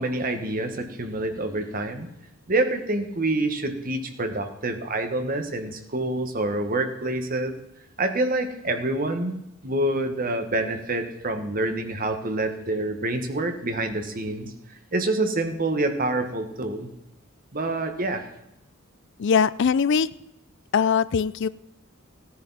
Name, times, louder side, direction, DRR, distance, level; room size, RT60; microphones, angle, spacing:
voice 1, 0.0-2.1 2.5-7.5 8.0-9.4 9.6-14.5 14.9-16.9 17.5-18.3, right 2 dB, 40° right, 7 dB, 1.4 m, -27 dB
voice 2, 19.2-20.1 20.7-21.5, left 6 dB, 60° left, 17 dB, 0.4 m, -21 dB
16.5 x 10.0 x 4.1 m, 0.85 s
head